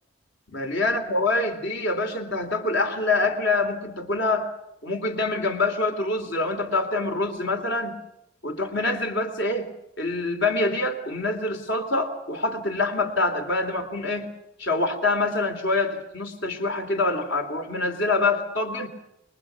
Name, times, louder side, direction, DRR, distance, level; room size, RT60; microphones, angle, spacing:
voice 1, 0.5-4.5 4.8-8.0 8.4-9.7 10.0-14.3 14.6-18.9, left 2 dB, 65° left, 5 dB, 3.5 m, -25 dB
29.5 x 22.0 x 5.9 m, 0.82 s
head